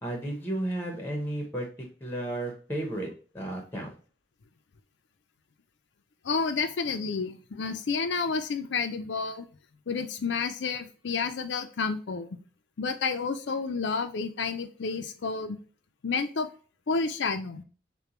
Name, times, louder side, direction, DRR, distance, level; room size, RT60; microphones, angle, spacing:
voice 1, 0.0-3.1 3.3-3.9, right 1 dB, 10° left, 2 dB, 0.8 m, -33 dB
voice 2, 6.2-9.5 9.9-12.3 12.8-15.6 16.0-16.5 16.9-17.6, left 4 dB, 75° left, 8 dB, 0.5 m, -30 dB
6.6 x 2.2 x 2.9 m, 0.40 s
head